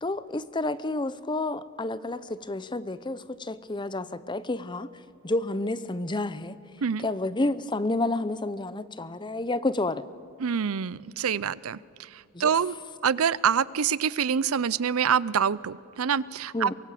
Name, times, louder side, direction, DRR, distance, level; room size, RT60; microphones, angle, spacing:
voice 1, 0.0-4.9 5.2-6.6 7.0-10.0 12.3-12.5 16.5-16.7, left 2 dB, 20° left, 15 dB, 0.7 m, -30 dB
voice 2, 10.4-12.1 12.4-12.8 13.0-16.7, right 7 dB, 85° right, 20 dB, 0.6 m, -26 dB
23.5 x 22.5 x 8.4 m, 2.3 s
head